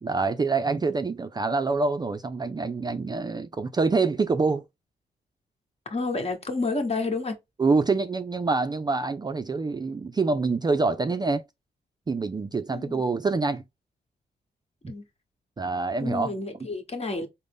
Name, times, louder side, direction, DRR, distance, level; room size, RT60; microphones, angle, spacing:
voice 1, 0.0-4.6 7.6-11.4 12.1-13.6 15.6-16.4, right 4 dB, 25° right, 0.4 m, -26 dB
voice 2, 5.9-7.4 12.7-13.0 14.9-15.0 16.0-17.3, left 3 dB, 40° left, 1.2 m, -30 dB
3.7 x 2.1 x 3.4 m
cardioid pair, 60°, 16 cm